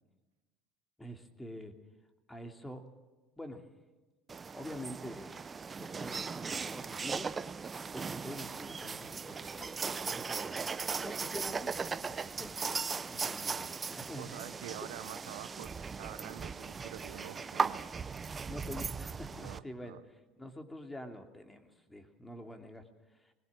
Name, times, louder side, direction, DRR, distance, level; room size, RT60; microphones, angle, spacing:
voice 1, 1.0-1.8 2.3-2.9 3.4-3.7 4.5-5.3 5.8-7.3 7.6-10.6 11.0-12.6 13.1-14.3 18.5-23.3, equal, 10° left, 5 dB, 2.9 m, -46 dB
sound 1, 4.3-19.6, right 5 dB, 30° right, 0.8 m, -38 dB
voice 2, 14.1-17.9 19.4-20.0, right 14 dB, 85° right, 12 dB, 1.0 m, -47 dB
21.0 x 20.0 x 7.7 m, 1.2 s
supercardioid pair, 85°, 0 cm